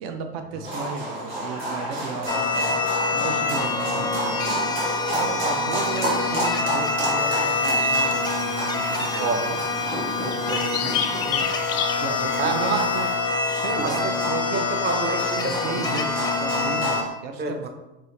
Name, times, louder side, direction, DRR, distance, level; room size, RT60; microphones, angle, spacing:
voice 1, 0.0-9.6 10.5-10.6 11.1-11.3 12.0-13.1 13.5-17.7, right 4 dB, 60° right, 6 dB, 0.6 m, -34 dB
sound 1, 0.6-17.1, right 1 dB, 85° right, 1.4 m, -30 dB
sound 2, 2.3-17.0, left 3 dB, 15° left, 0.5 m, -26 dB
sound 3, 7.2-13.1, left 9 dB, 80° left, 0.4 m, -33 dB
voice 2, 9.2-9.9 10.2-10.9 11.2-11.5 12.4-12.9 13.7-14.1 14.5-15.9 17.4-17.7, right 4 dB, 35° right, 4 dB, 0.8 m, -29 dB
4.5 x 2.8 x 3.2 m, 1.0 s
hypercardioid pair, 75°, 29 cm